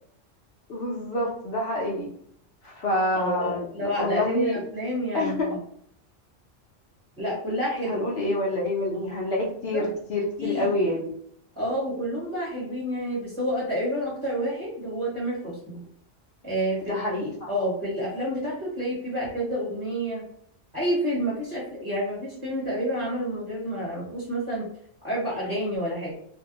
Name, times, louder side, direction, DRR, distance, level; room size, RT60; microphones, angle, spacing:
voice 1, 0.7-2.1 2.6-4.6 5.1-5.5 7.9-11.1 16.8-17.5, left 1 dB, 60° left, -4 dB, 0.9 m, -27 dB
voice 2, 3.1-5.6 7.2-8.1 9.7-9.9 10.4-10.7 11.5-15.8 16.4-17.0 17.5-20.2 20.7-24.7 25.0-26.1, equal, 25° right, -5 dB, 1.1 m, -29 dB
2.6 x 2.2 x 2.8 m, 0.65 s
omnidirectional pair, 1.3 m